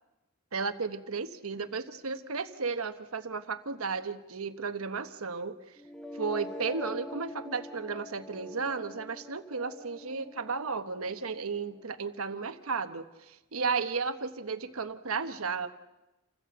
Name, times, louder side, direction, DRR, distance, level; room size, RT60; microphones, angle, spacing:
voice 1, 0.5-5.6 6.1-15.7, right 4 dB, 85° right, 9 dB, 1.1 m, -34 dB
sound 1, 5.8-11.8, left 1 dB, 5° left, 0.8 m, -44 dB
29.0 x 15.5 x 7.9 m, 1.0 s
head